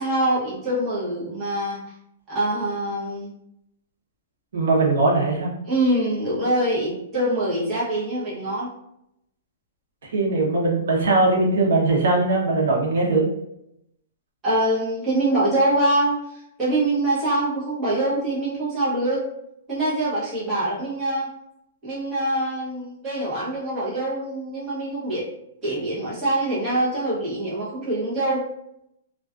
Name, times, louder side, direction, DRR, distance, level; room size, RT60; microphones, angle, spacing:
voice 1, 0.0-1.8 2.3-3.3 5.7-8.7 14.4-19.2 19.7-21.3 21.8-25.3 25.6-28.5, right 1 dB, 20° right, -9 dB, 0.9 m, -24 dB
voice 2, 4.5-5.5 10.0-13.3, right 2 dB, 80° right, -2 dB, 0.7 m, -20 dB
2.3 x 2.3 x 2.3 m, 0.80 s
hypercardioid pair, 170°, 0 cm